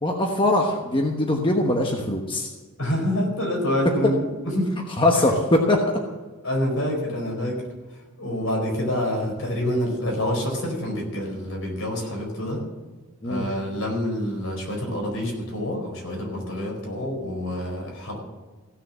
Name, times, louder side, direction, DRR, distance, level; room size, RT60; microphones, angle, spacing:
voice 1, 0.0-2.5 5.0-5.8 13.2-13.5, left 1 dB, 25° left, 1 dB, 1.1 m, -21 dB
voice 2, 2.8-4.7 5.1-5.3 6.4-7.6 7.9-12.6 13.2-18.2, equal, 70° left, 0 dB, 4.5 m, -27 dB
16.0 x 6.6 x 7.3 m, 1.3 s
head